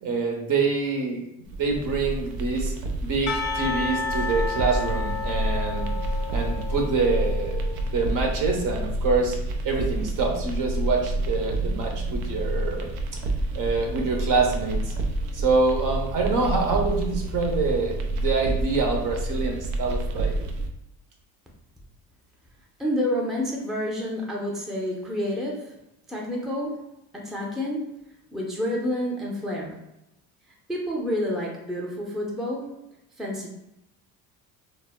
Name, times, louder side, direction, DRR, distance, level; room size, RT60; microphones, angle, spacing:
voice 1, 0.0-2.7 3.0-6.0 6.3-9.4 9.6-12.9 13.5-14.9 15.3-20.4, right 4 dB, 50° right, 1 dB, 0.8 m, -26 dB
sound 1, 1.4-20.7, right 1 dB, 90° right, 0.5 m, -29 dB
Percussion / Church bell, 3.3-7.7, left 4 dB, 45° left, 0.5 m, -32 dB
voice 2, 22.8-25.8 26.1-27.9 28.3-29.8 30.7-32.8 33.2-33.5, left 1 dB, ahead, -2 dB, 0.6 m, -29 dB
2.1 x 2.0 x 3.4 m, 0.85 s
supercardioid pair, 80°, 41 cm